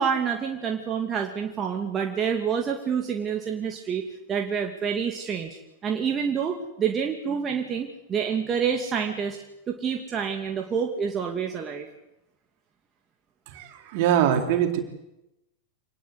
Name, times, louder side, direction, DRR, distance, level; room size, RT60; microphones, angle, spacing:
voice 1, 0.0-4.0 4.3-9.4 9.7-11.9, right 7 dB, 25° right, 2 dB, 2.4 m, -28 dB
voice 2, 13.5-14.8, right 10 dB, 50° right, 4 dB, 3.9 m, -23 dB
26.5 x 19.5 x 8.1 m, 0.90 s
figure-of-eight pair, 90°, 0 cm